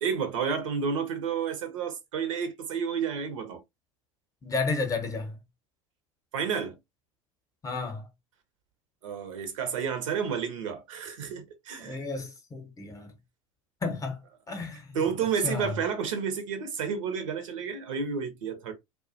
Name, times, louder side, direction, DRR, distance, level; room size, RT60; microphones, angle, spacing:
voice 1, 0.0-3.6 6.3-6.8 9.0-12.0 14.9-18.7, right 6 dB, 70° right, 0.7 m, -31 dB
voice 2, 4.4-5.4 7.6-8.1 11.8-13.1 13.8-14.2 14.5-14.9 15.4-15.7, left 3 dB, 20° left, 0.7 m, -32 dB
2.3 x 2.2 x 2.5 m
hypercardioid pair, 80°, 17 cm